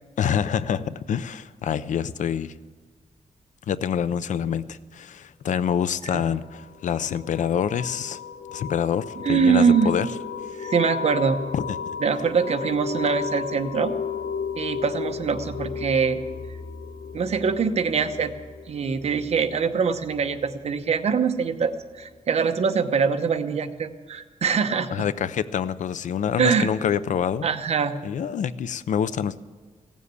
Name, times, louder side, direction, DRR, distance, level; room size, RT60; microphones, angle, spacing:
voice 1, 0.2-2.5 3.7-8.2 8.5-10.1 11.5-11.6 24.9-27.5 28.0-29.4, left 8 dB, 85° left, 15 dB, 0.5 m, -26 dB
sound 1, 6.5-20.9, left 6 dB, 70° left, 1.0 m, -34 dB
voice 2, 9.2-9.9 10.6-11.4 12.0-13.9 14.6-16.2 17.1-18.3 18.7-24.9 26.4-26.7 27.4-27.9, right 6 dB, 60° right, 8 dB, 0.9 m, -23 dB
16.5 x 7.4 x 8.3 m, 1.5 s
wide cardioid pair, 160°, 12 cm